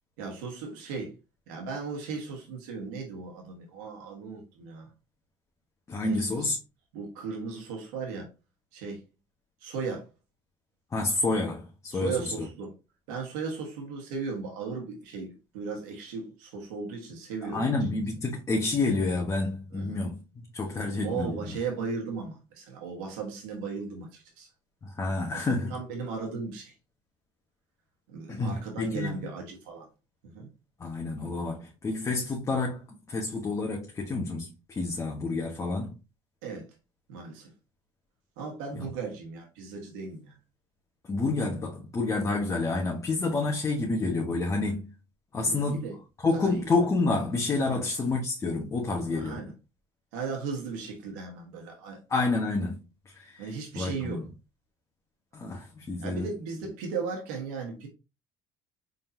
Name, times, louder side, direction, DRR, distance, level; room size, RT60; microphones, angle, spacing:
voice 1, 0.2-1.1 1.5-4.9 6.0-6.3 6.9-8.3 8.7-9.0 9.6-10.1 11.9-12.7 13.1-17.7 19.7-20.0 21.0-24.5 25.3-26.7 28.1-29.9 30.3-30.5 36.4-36.7 37.1-37.5 38.4-40.4 45.4-46.0 46.3-46.6 47.7-47.8 49.1-49.5 50.1-52.0 53.4-54.3 56.0-57.9, right 5 dB, 90° right, 1.3 m, -36 dB
voice 2, 5.9-6.6 10.9-12.5 17.5-21.4 24.8-25.8 28.3-29.1 30.8-35.9 38.8-38.9 41.1-44.9 45.3-45.8 46.2-49.4 52.1-52.8 53.0-54.3 55.3-56.3, left 3 dB, 30° left, 1.2 m, -29 dB
4.2 x 3.7 x 2.7 m
supercardioid pair, 90°, 11 cm